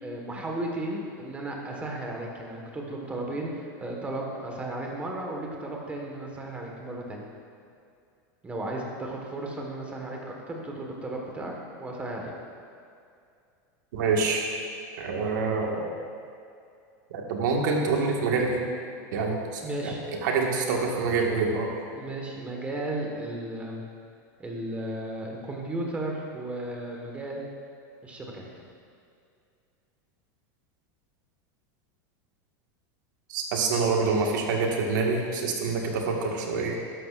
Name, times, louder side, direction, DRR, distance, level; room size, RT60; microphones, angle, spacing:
voice 1, 0.0-7.2 8.4-11.5 11.8-12.3 19.6-20.0 21.9-23.8 24.4-27.4 28.0-28.7, right 1 dB, 15° right, 0 dB, 1.5 m, -34 dB
voice 2, 13.9-14.4 15.0-15.8 17.1-18.6 19.1-19.9 20.2-21.7 33.3-36.7, right 4 dB, 75° right, 0 dB, 1.7 m, -26 dB
13.0 x 11.5 x 2.5 m, 2.4 s
supercardioid pair, 155°, 10 cm